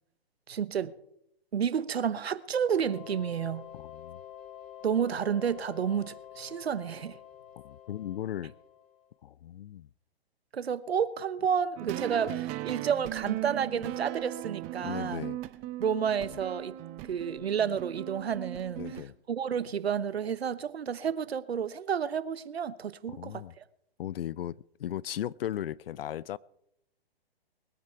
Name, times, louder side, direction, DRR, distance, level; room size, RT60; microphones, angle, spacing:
voice 1, 0.5-1.0 1.5-3.7 4.8-7.2 10.5-15.2 15.8-16.8 17.1-18.8 19.3-23.6, right 7 dB, 85° right, 1.0 m, -30 dB
sound 1, 2.5-9.2, left 10 dB, 30° left, 2.0 m, -48 dB
voice 2, 3.7-4.2 7.6-8.5 9.2-9.9 14.8-15.4 16.3-16.4 18.8-19.1 23.1-23.5 24.0-26.4, left 11 dB, 65° left, 0.6 m, -37 dB
sound 2, 11.8-19.0, right 15 dB, 25° right, 0.7 m, -38 dB
21.0 x 10.0 x 4.6 m
hypercardioid pair, 135°, 30 cm